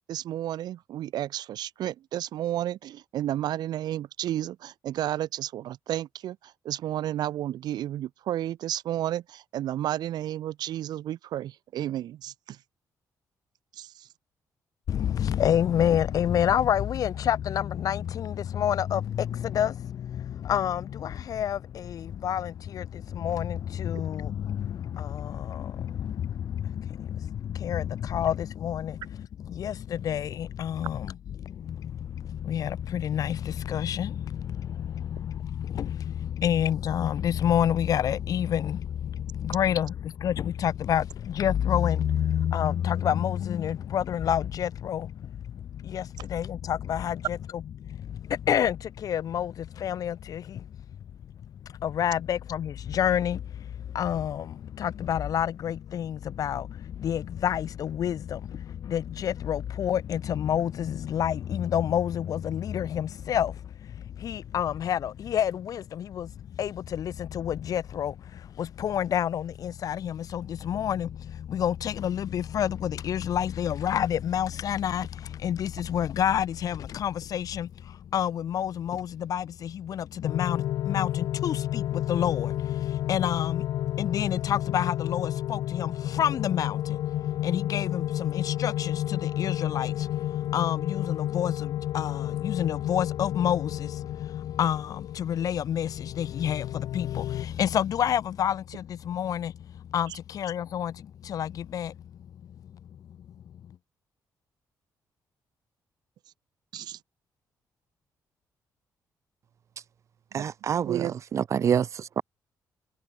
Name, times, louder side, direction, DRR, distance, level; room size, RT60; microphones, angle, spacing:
voice 1, 0.1-12.6 13.7-14.1 100.1-100.2 106.7-107.0 110.3-111.1, right 12 dB, 80° right, 6.7 m, -32 dB
voice 2, 14.9-50.7 51.6-102.0 102.9-103.0 103.6-103.8, left 9 dB, 60° left, 1.8 m, -29 dB
sound 1, 80.2-97.4, left 13 dB, 90° left, 3.5 m, -31 dB
voice 3, 110.3-112.2, right 8 dB, 45° right, 1.0 m, -27 dB
cardioid pair, 140°, 7 cm